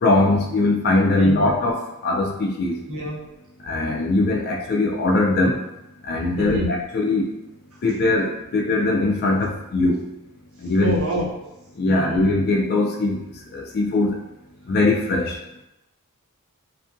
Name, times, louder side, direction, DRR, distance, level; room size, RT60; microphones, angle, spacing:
voice 1, 0.0-2.8 3.6-5.6 6.0-7.3 7.8-10.0 10.6-11.0 11.8-14.2 14.7-15.4, left 2 dB, 45° left, 1 dB, 0.3 m, -21 dB
voice 2, 1.2-1.6 2.9-3.3 6.4-6.7 10.8-11.5 11.9-12.3, equal, 70° right, -3 dB, 0.7 m, -27 dB
2.6 x 2.4 x 2.5 m, 0.92 s
head